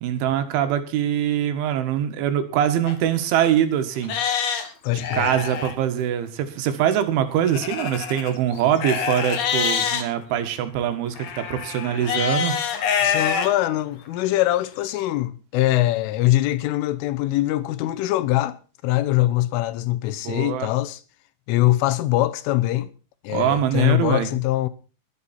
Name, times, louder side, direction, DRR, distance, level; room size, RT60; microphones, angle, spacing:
voice 1, 0.0-4.2 4.9-12.6 20.3-20.7 23.3-24.3, right 10 dB, 80° right, 4.0 m, -23 dB
Livestock farm animals working animals, 2.9-3.0 3.5-3.6 4.0-5.7 7.5-10.0 11.2-13.5 14.1-14.2 14.8-14.9, left 7 dB, 60° left, 3.5 m, -25 dB
voice 2, 4.8-5.4 13.0-18.6 18.8-21.0 21.5-22.9 23.2-24.7, left 15 dB, 85° left, 3.5 m, -22 dB
22.0 x 8.8 x 4.3 m
omnidirectional pair, 5.5 m